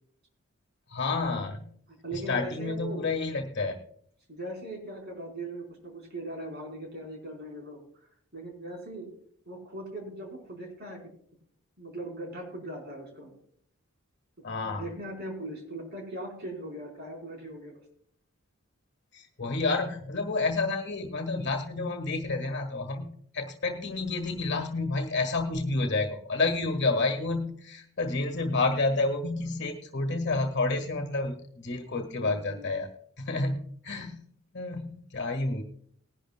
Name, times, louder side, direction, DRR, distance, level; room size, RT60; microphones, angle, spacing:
voice 1, 0.9-1.7 2.1-3.8 14.4-14.9 19.1-32.9 33.2-34.2 34.5-35.6, left 3 dB, 60° left, 5 dB, 1.4 m, -30 dB
voice 2, 2.0-3.0 3.6-3.8 4.3-7.8 8.3-9.1 9.5-11.0 11.8-13.3 14.6-17.7 32.1-32.7, right 1 dB, 55° right, 1 dB, 4.1 m, -39 dB
20.0 x 11.5 x 2.2 m, 0.64 s
head